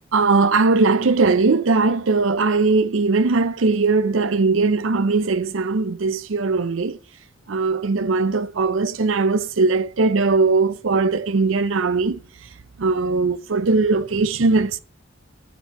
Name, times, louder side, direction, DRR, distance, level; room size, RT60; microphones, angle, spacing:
voice 1, 0.1-7.0 7.5-12.2 12.8-14.8, right 3 dB, 90° right, 0.6 m, -19 dB
12.5 x 6.8 x 3.0 m
head